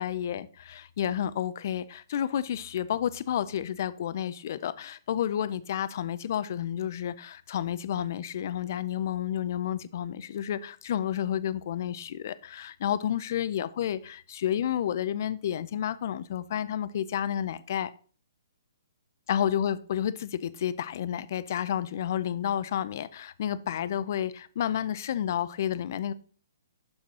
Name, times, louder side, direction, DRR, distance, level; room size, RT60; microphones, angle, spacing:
voice 1, 0.0-17.9 19.3-26.1, left 10 dB, 45° left, 0.4 m, -30 dB
6.4 x 6.0 x 4.2 m
hypercardioid pair, 160°, 2 cm